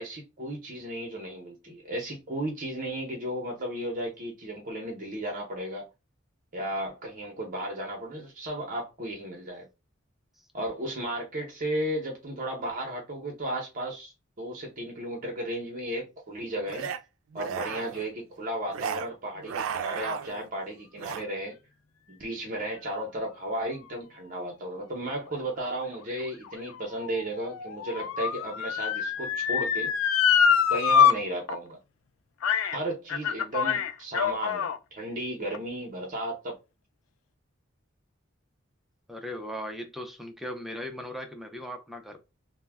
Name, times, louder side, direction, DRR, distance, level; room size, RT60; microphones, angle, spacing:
voice 1, 0.0-5.8 6.5-9.7 10.5-14.1 14.4-16.9 17.3-21.6 22.1-29.9 30.7-31.8 32.6-36.6, right 1 dB, 40° right, 0.7 m, -34 dB
sound 1, 16.7-17.0 17.3-18.1 18.7-19.1 19.4-20.5 21.0-21.3, right 8 dB, 85° right, 0.3 m, -34 dB
Motor vehicle (road) / Siren, 25.9-31.1 31.5-31.6 32.4-32.8 33.1-34.8 35.5-35.6, left 7 dB, 90° left, 0.4 m, -25 dB
voice 2, 39.1-42.2, equal, ahead, 0.4 m, -38 dB
2.2 x 2.1 x 3.3 m
head